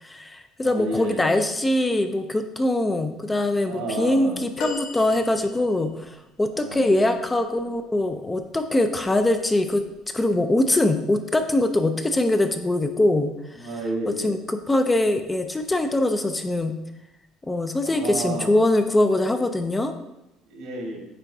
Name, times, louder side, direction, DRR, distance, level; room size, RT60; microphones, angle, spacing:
voice 1, 0.0-9.8 10.1-13.3 13.6-13.7 14.2-16.7 17.4-19.9, left 1 dB, 10° left, 7 dB, 0.4 m, -22 dB
voice 2, 0.6-1.3 3.6-4.4 6.5-7.2 13.5-14.4 17.8-18.5 20.4-21.0, right 1 dB, 90° right, 0 dB, 1.7 m, -31 dB
sound 1, 4.6-6.0 8.4-8.6 9.9-10.0, left 3 dB, 60° left, 0.7 m, -36 dB
8.4 x 4.4 x 2.7 m, 0.93 s
cardioid pair, 155°, 0 cm